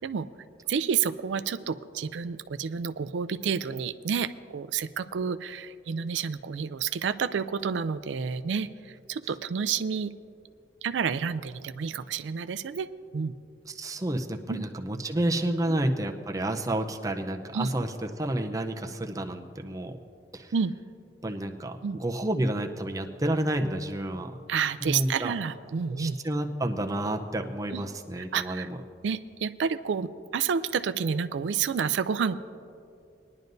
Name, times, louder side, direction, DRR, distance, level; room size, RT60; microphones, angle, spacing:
voice 1, 0.7-10.1 10.8-13.3 14.5-14.6 15.7-15.8 17.5-17.7 20.5-20.7 21.8-22.0 24.5-26.2 27.7-27.8 28.2-28.7 29.0-32.4, right 6 dB, 85° right, 12 dB, 0.4 m, -30 dB
voice 2, 13.7-20.0 20.3-20.5 21.2-24.4 24.8-25.3 25.9-28.7, right 1 dB, 20° right, 3 dB, 0.6 m, -30 dB
20.5 x 10.5 x 2.6 m, 2.5 s
head